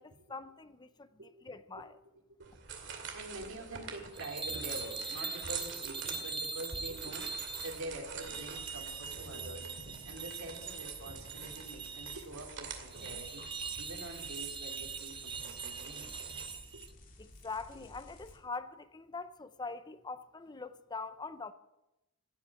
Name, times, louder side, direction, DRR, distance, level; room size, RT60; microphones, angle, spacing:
voice 1, 0.0-2.0 17.2-21.5, left 4 dB, 20° left, 0.6 m, -43 dB
sound 1, 2.4-16.5, right 6 dB, 60° right, 2.4 m, -46 dB
voice 2, 2.4-9.7 10.0-13.5 13.8-16.1 16.7-16.8, right 1 dB, 90° right, 3.5 m, -46 dB
sound 2, 4.1-7.8 8.2-12.3 12.9-16.9, right 5 dB, 25° right, 0.7 m, -42 dB
sound 3, 7.4-18.4, left 1 dB, 40° left, 2.5 m, -56 dB
16.5 x 8.8 x 8.8 m
head